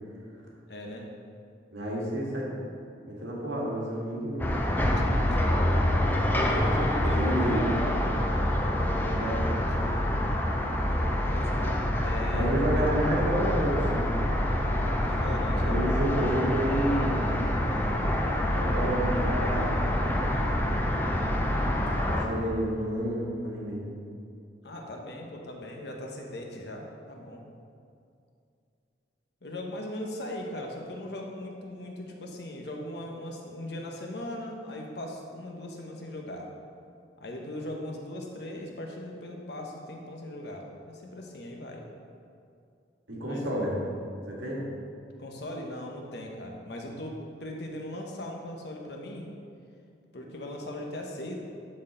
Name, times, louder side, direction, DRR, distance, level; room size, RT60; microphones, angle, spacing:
voice 1, 0.7-1.1 4.9-5.5 6.3-7.8 9.6-9.9 10.2-10.3 11.1-12.5 15.0-15.8 24.6-27.4 29.4-36.5 37.2-41.9 43.2-43.4 45.2-49.3 50.1-51.3, left 1 dB, 60° left, 1 dB, 1.0 m, -39 dB
voice 2, 1.7-2.5 3.1-4.7 7.0-7.7 9.1-9.4 12.3-14.1 15.6-17.3 18.5-19.8 22.1-23.8 43.1-43.8 44.3-44.6, right 1 dB, 80° right, -4 dB, 1.7 m, -30 dB
sound 1, 4.4-22.3, left 1 dB, 10° left, 0.5 m, -26 dB
11.5 x 4.2 x 3.9 m, 2.4 s
head